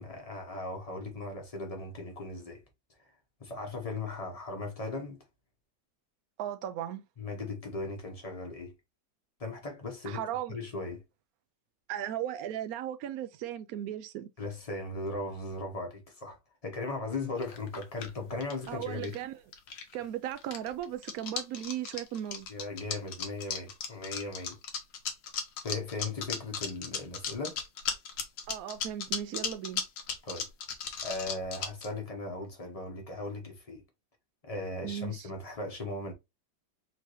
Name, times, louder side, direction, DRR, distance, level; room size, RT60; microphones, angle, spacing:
voice 1, 0.0-2.6 3.0-3.1 3.4-5.2 7.2-8.7 9.4-10.2 10.5-11.0 14.4-19.1 22.5-24.6 25.6-27.6 30.2-30.5 31.0-33.8 34.4-36.1, left 2 dB, 30° left, 0.7 m, -38 dB
voice 2, 6.4-7.0 10.1-10.6 11.9-14.3 18.7-19.4 19.9-22.5 28.5-29.8 34.8-35.3, right 11 dB, 70° right, 0.9 m, -36 dB
sound 1, 17.4-19.2 19.5-20.1 20.3-31.9, left 6 dB, 80° left, 1.6 m, -36 dB
4.5 x 2.9 x 3.0 m
omnidirectional pair, 1.9 m